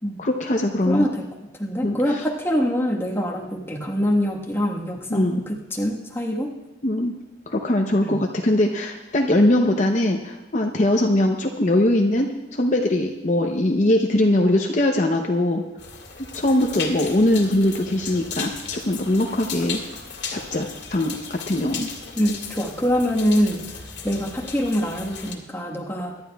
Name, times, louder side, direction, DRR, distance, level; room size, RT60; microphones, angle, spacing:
voice 1, 0.2-1.1 1.8-2.0 5.1-5.4 6.8-7.1 7.5-15.6 16.3-19.8 20.3-21.9, left 1 dB, 40° left, 2 dB, 0.7 m, -21 dB
voice 2, 0.8-6.5 8.0-8.2 22.2-26.2, equal, 15° left, -2 dB, 1.3 m, -24 dB
sound 1, 15.8-25.3, left 5 dB, 75° left, 1.9 m, -35 dB
23.5 x 11.5 x 2.3 m, 1.0 s
head